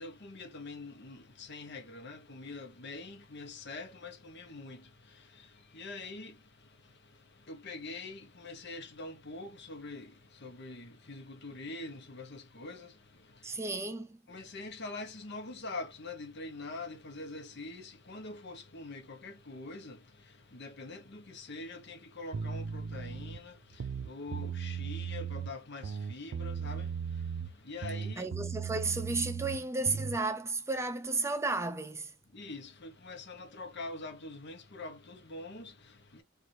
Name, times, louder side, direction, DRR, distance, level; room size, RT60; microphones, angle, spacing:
voice 1, 0.0-13.6 14.3-28.3 32.3-36.2, left 2 dB, 60° left, 1.0 m, -45 dB
voice 2, 13.4-14.2 28.2-32.1, right 3 dB, 15° right, 0.5 m, -33 dB
sound 1, 22.3-23.4 23.7-25.5 25.8-27.6 27.8-30.2, right 6 dB, 80° right, 0.4 m, -37 dB
4.7 x 2.5 x 2.7 m
head